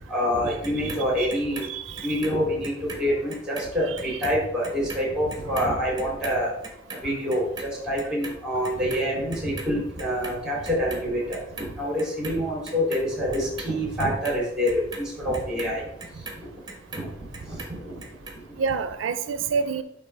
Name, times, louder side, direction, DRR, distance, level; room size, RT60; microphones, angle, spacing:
voice 1, 0.1-1.6 2.0-6.5 7.0-15.8 16.9-17.1 17.5-17.9, equal, 5° right, -4 dB, 2.8 m, -26 dB
Clock, 0.6-3.0 3.3-9.7 10.0-11.0 11.3-12.3 12.6-17.1 17.3-18.3 18.7-18.8, right 3 dB, 20° right, 1.2 m, -39 dB
voice 2, 0.8-1.3 1.6-2.1 18.6-19.8, right 5 dB, 85° right, 11 dB, 0.4 m, -28 dB
10.5 x 3.7 x 3.3 m, 0.80 s
head